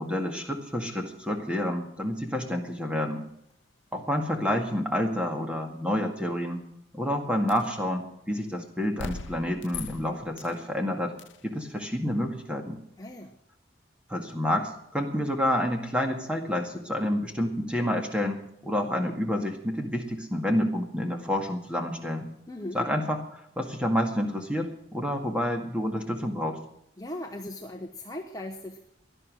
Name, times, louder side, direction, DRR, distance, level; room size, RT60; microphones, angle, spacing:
voice 1, 0.0-3.2 3.9-6.6 6.9-11.1 11.4-12.8 14.1-22.3 22.7-23.2 23.6-26.6, equal, 5° right, 3 dB, 1.9 m, -29 dB
sound 1, 7.5-7.7 9.0-10.6 11.2-11.4, left 5 dB, 80° left, 0.7 m, -40 dB
voice 2, 13.0-13.3 22.5-22.9 27.0-28.8, left 1 dB, 20° left, 3 dB, 1.0 m, -38 dB
17.0 x 11.5 x 6.2 m, 0.76 s
head